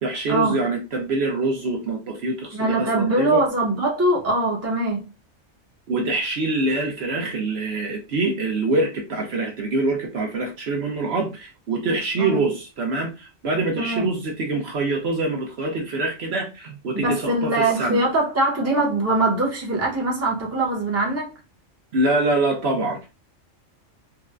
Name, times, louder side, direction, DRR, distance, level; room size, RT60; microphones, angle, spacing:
voice 1, 0.0-3.4 5.9-18.0 21.9-23.1, right 2 dB, 60° right, 0.8 m, -25 dB
voice 2, 2.5-5.1 12.2-12.4 13.8-14.1 16.9-21.3, right 2 dB, 15° right, 0.7 m, -22 dB
3.8 x 2.2 x 2.4 m
omnidirectional pair, 1.3 m